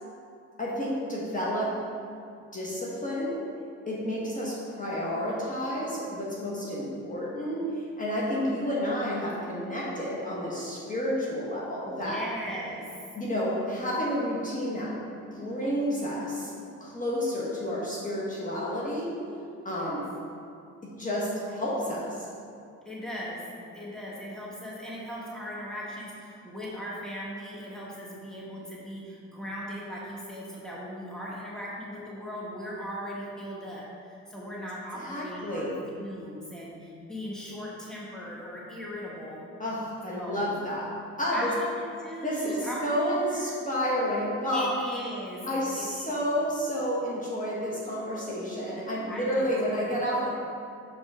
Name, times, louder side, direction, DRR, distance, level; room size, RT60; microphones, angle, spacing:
voice 1, 0.6-1.7 2.5-3.4 3.9-12.2 13.1-14.9 15.3-16.5 16.8-19.2 19.6-20.0 20.8-22.3 34.9-35.8 39.6-40.9 41.2-41.5 42.2-44.7 45.5-50.3, equal, 25° left, -6 dB, 1.4 m, -30 dB
voice 2, 11.8-12.9 19.7-20.0 22.8-23.4 23.7-35.7 36.0-39.5 40.1-40.5 41.3-43.5 44.5-45.4 45.7-46.3 49.1-49.8, equal, ahead, -6 dB, 1.5 m, -38 dB
6.3 x 5.4 x 3.5 m, 2.5 s
cardioid pair, 90°, 30 cm